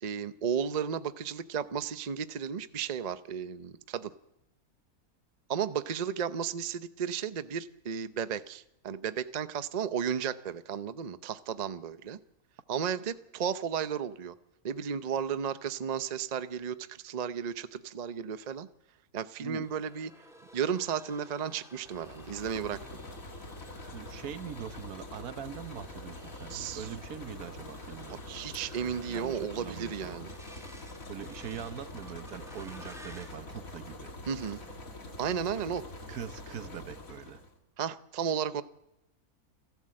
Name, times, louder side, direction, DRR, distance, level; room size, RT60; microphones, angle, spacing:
voice 1, 0.0-4.1 5.5-12.2 12.7-14.3 14.6-18.7 19.1-20.1 20.5-22.8 26.5-26.8 28.3-30.3 34.3-34.6 35.2-35.8 37.8-38.6, right 7 dB, 40° right, 12 dB, 0.6 m, -34 dB
sound 1, 19.6-33.4 34.1-34.7 35.2-35.5 35.8-36.6, equal, ahead, 3.1 m, -55 dB
sound 2, 21.8-37.6, left 2 dB, 65° left, 2.7 m, -45 dB
voice 2, 23.9-28.2 29.1-30.2 31.1-34.1 35.7-35.8 36.1-37.4, right 9 dB, 75° right, 13 dB, 1.4 m, -43 dB
28.5 x 12.0 x 7.6 m, 0.91 s
omnidirectional pair, 1.6 m